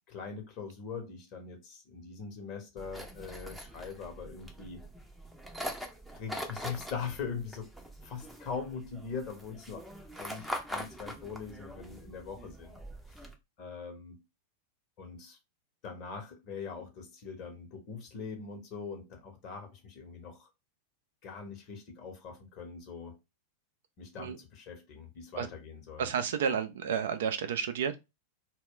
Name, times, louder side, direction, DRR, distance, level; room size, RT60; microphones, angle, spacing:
voice 1, 0.1-4.8 6.1-7.7 8.0-9.9 10.1-12.8 13.6-14.2 15.0-15.4 15.8-20.5 21.2-23.2 24.0-26.1, left 5 dB, 40° left, 0.9 m, -42 dB
sound 1, 2.8-13.3, equal, ahead, 0.6 m, -43 dB
voice 2, 26.0-27.9, right 7 dB, 60° right, 0.4 m, -31 dB
2.3 x 2.1 x 3.6 m
figure-of-eight pair, 90°, 0 cm